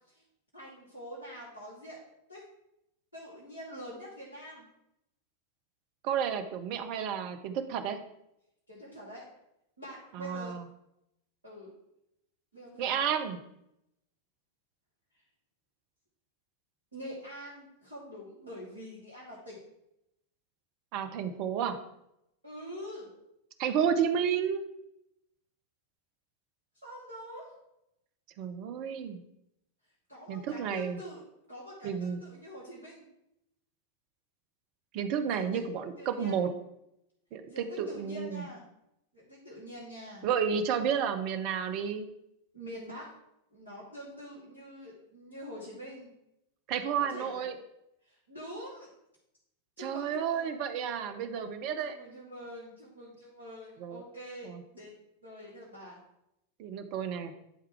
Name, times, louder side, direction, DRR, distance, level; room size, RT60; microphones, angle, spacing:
voice 1, 0.5-2.0 2.3-2.4 3.1-4.7 8.7-9.2 9.8-10.5 11.4-11.7 12.5-13.0 16.9-19.6 22.4-23.1 26.8-27.5 30.1-31.2 31.5-33.1 35.3-35.6 36.0-36.4 37.5-38.6 39.1-40.2 42.5-43.1 43.5-46.1 47.0-47.4 48.0-48.9 49.8-50.6 51.8-54.9 55.2-56.0, equal, 80° right, -8 dB, 2.5 m, -45 dB
voice 2, 6.0-8.0 10.1-10.6 12.8-13.4 20.9-21.8 23.6-24.6 28.4-29.2 30.3-31.0 31.8-32.2 34.9-36.5 37.3-38.4 40.2-42.1 46.7-47.6 49.8-52.0 53.8-54.0 54.4-54.6 56.6-57.3, right 7 dB, 45° right, 8 dB, 0.8 m, -31 dB
11.0 x 3.7 x 4.5 m, 0.83 s
figure-of-eight pair, 90°, 0 cm